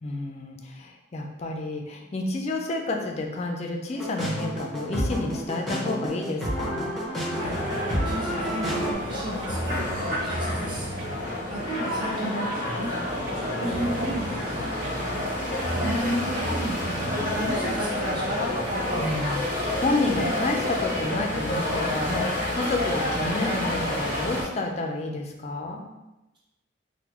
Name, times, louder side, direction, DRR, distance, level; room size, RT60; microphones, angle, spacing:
voice 1, 0.0-7.0 19.0-25.8, left 2 dB, 35° left, 2 dB, 0.4 m, -30 dB
Hopeful Song, 4.0-8.9, equal, ahead, 0.8 m, -30 dB
sound 1, 7.4-24.4, left 1 dB, 45° right, 1.2 m, -29 dB
sound 2, 7.5-8.1 8.7-9.2 9.4-11.2 11.7-12.0 12.5-12.8 13.3-14.3 14.8-15.3 15.6-17.4 17.9-18.1 18.7-18.9 19.4-19.7, right 1 dB, 60° right, 0.4 m, -37 dB
voice 2, 8.0-10.9 11.5-12.9 13.3-15.3 15.7-18.4, right 1 dB, 25° right, -7 dB, 1.0 m, -34 dB
3.6 x 2.1 x 2.9 m, 0.99 s
head